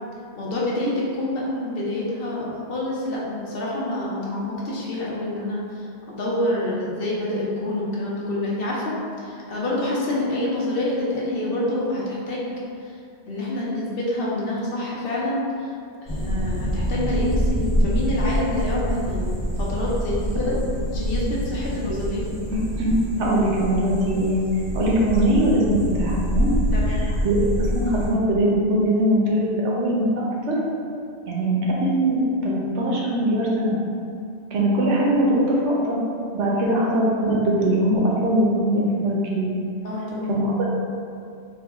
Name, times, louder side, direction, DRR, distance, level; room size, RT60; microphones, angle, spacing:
voice 1, 0.4-12.5 12.8-12.9 13.3-15.7 16.0-22.4 26.7-27.1 34.6-34.7 39.8-40.6, left 1 dB, 60° left, -6 dB, 0.8 m, -27 dB
sound 1, 16.1-28.1, equal, 35° left, 1.0 m, -26 dB
voice 2, 22.5-24.4 24.7-26.5 26.9-30.1 30.5-30.6 31.3-33.8 34.5-36.0 36.3-39.5 40.3-40.5, right 1 dB, 80° right, -3 dB, 1.0 m, -21 dB
3.5 x 2.0 x 3.4 m, 2.4 s
omnidirectional pair, 1.2 m